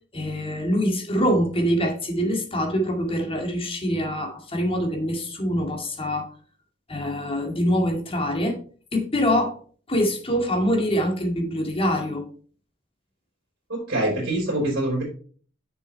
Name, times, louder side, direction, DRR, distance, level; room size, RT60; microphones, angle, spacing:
voice 1, 0.1-6.3 6.9-8.6 8.9-9.6 9.9-12.2, equal, 30° left, 2 dB, 2.0 m, -24 dB
voice 2, 13.7-15.0, right 1 dB, 60° right, -3 dB, 3.5 m, -24 dB
6.8 x 6.3 x 4.2 m, 0.42 s
head